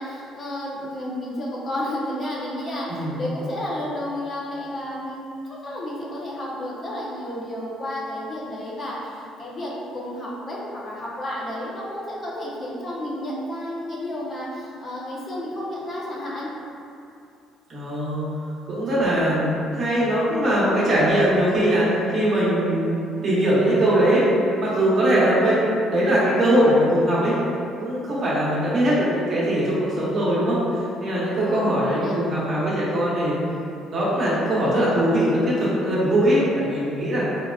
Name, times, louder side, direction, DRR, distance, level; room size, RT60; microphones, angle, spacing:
voice 1, 0.0-16.5 31.4-32.2, left 1 dB, 35° left, -5 dB, 0.5 m, -31 dB
voice 2, 17.7-18.3 18.7-22.9 23.2-24.2 24.6-27.3 27.8-30.6 31.0-33.4 33.9-37.2, right 1 dB, 40° right, -8 dB, 0.9 m, -21 dB
3.4 x 2.3 x 2.3 m, 2.7 s
cardioid pair, 115°, 0 cm